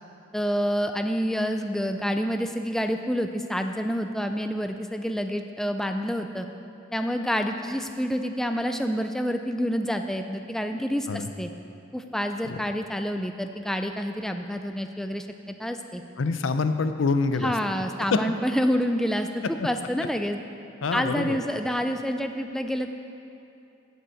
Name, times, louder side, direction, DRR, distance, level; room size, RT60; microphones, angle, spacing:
voice 1, 0.3-6.5 6.9-11.5 11.9-16.0 17.4-20.4 20.9-22.9, equal, ahead, 6 dB, 0.3 m, -28 dB
voice 2, 16.2-17.5 18.1-18.2 20.8-21.4, left 4 dB, 85° left, 9 dB, 0.6 m, -25 dB
8.1 x 7.9 x 7.7 m, 2.7 s
head